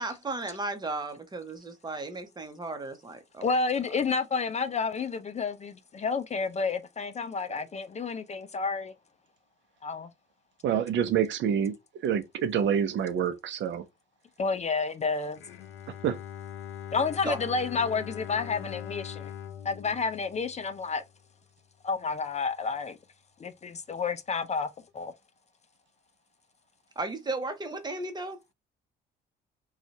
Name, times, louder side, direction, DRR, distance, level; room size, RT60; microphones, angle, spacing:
voice 1, 0.0-3.5 17.3-17.4 27.0-28.4, right 2 dB, 20° right, 0.9 m, -35 dB
voice 2, 3.4-8.9 9.8-10.1 14.4-15.4 16.9-19.3 19.6-21.0 21.8-23.0 23.4-25.1, left 4 dB, 35° left, 0.5 m, -30 dB
voice 3, 10.6-11.7 12.0-13.9 16.0-16.2, right 8 dB, 70° right, 0.6 m, -27 dB
Bowed string instrument, 15.4-21.3, left 10 dB, 85° left, 0.7 m, -42 dB
2.7 x 2.4 x 4.0 m
cardioid pair, 90°, 20 cm